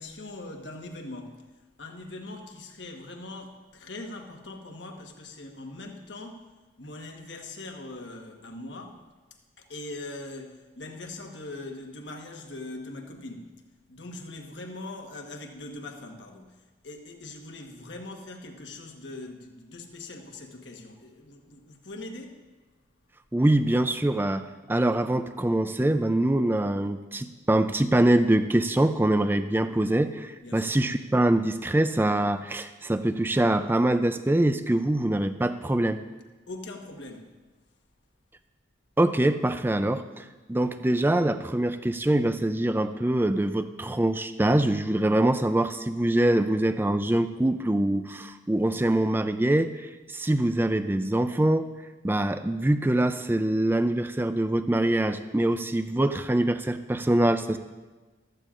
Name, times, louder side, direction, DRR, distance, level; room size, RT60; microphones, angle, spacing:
voice 1, 0.0-1.5 1.8-6.5 6.8-9.0 9.6-13.5 13.9-22.4 30.4-30.8 36.5-37.3, left 2 dB, 70° left, 1.3 m, -41 dB
voice 2, 23.3-36.0 39.0-51.7 52.0-57.6, right 1 dB, 10° right, 0.4 m, -24 dB
14.5 x 13.5 x 2.5 m
head